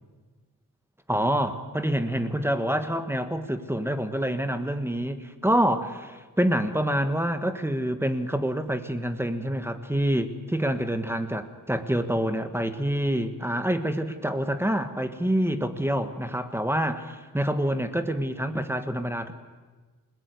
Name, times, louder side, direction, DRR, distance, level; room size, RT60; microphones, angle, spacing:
voice 1, 1.1-19.3, equal, 5° right, 8 dB, 1.5 m, -27 dB
28.5 x 20.5 x 9.4 m, 1.3 s
wide cardioid pair, 180°, 34 cm